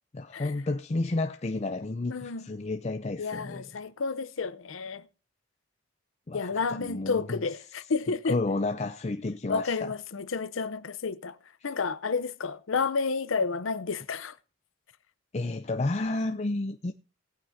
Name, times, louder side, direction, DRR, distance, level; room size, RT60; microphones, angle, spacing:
voice 1, 0.1-3.7 6.3-7.4 8.3-9.9 11.6-11.7 15.3-16.9, left 2 dB, 35° left, 0.5 m, -31 dB
voice 2, 2.1-2.5 3.2-5.1 6.3-8.4 9.5-11.4 11.6-14.4, left 4 dB, 85° left, 0.7 m, -31 dB
19.0 x 9.2 x 2.7 m
head